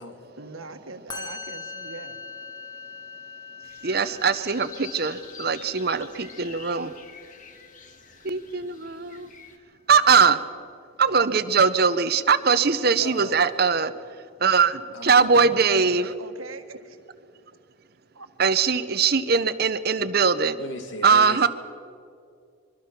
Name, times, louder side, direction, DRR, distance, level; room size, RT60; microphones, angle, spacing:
voice 1, 0.4-2.1 15.4-15.7 15.9-17.0 18.1-18.3, right 3 dB, 85° right, 7 dB, 1.7 m, -41 dB
Musical instrument, 1.1-8.4, left 4 dB, 20° left, 1.8 m, -42 dB
sound 1, 3.6-9.6, left 5 dB, 40° left, 1.6 m, -47 dB
voice 2, 3.8-7.0 8.2-9.3 9.9-10.5 11.0-16.1 18.4-20.6 21.0-21.5, right 5 dB, 50° right, 13 dB, 0.8 m, -21 dB
voice 3, 13.0-13.4 14.9-15.4 15.7-16.1 20.6-21.5, left 1 dB, 65° left, 6 dB, 2.0 m, -37 dB
24.5 x 23.0 x 6.0 m, 2.4 s
head